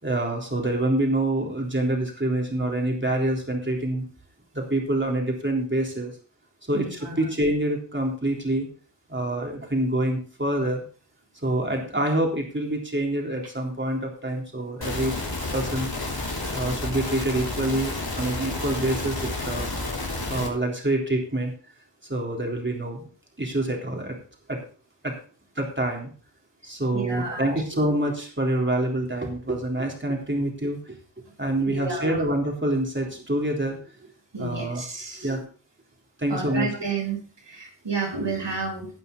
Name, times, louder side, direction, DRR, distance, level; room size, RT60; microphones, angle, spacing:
voice 1, 0.0-4.0 4.5-6.1 6.7-8.7 9.1-10.8 11.4-15.1 15.5-15.9 16.5-19.7 20.3-21.5 22.0-23.0 23.4-24.2 24.5-24.6 25.0-25.1 25.6-26.1 26.6-31.0 31.4-33.8 34.4-34.8 35.2-35.5 36.2-36.7, right 1 dB, 25° right, 0 dB, 3.6 m, -26 dB
voice 2, 6.7-7.3 26.9-27.4 31.7-32.2 34.3-35.3 36.3-38.9, right 4 dB, 90° right, 1 dB, 3.7 m, -31 dB
sound 1, 14.8-20.5, left 2 dB, 60° left, 3.6 m, -30 dB
17.0 x 5.7 x 5.4 m, 0.39 s
wide cardioid pair, 60°, 42 cm